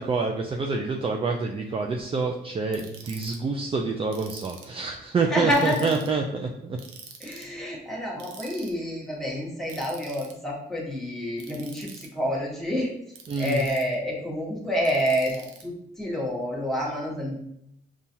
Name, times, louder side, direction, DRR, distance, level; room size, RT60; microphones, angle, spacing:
voice 1, 0.0-6.8 13.3-13.6, right 4 dB, 30° right, 2 dB, 0.4 m, -27 dB
Ratchet pawl, 2.7-3.4 4.1-4.8 5.5-6.1 6.8-7.5 8.2-8.7 9.7-10.3 11.4-12.1 13.1-13.9 14.8-15.6, right 6 dB, 85° right, 0.7 m, -45 dB
voice 2, 5.3-5.9 7.2-12.9 13.4-17.4, equal, ahead, -4 dB, 1.3 m, -28 dB
5.4 x 2.4 x 2.8 m, 0.76 s
cardioid pair, 90°, 20 cm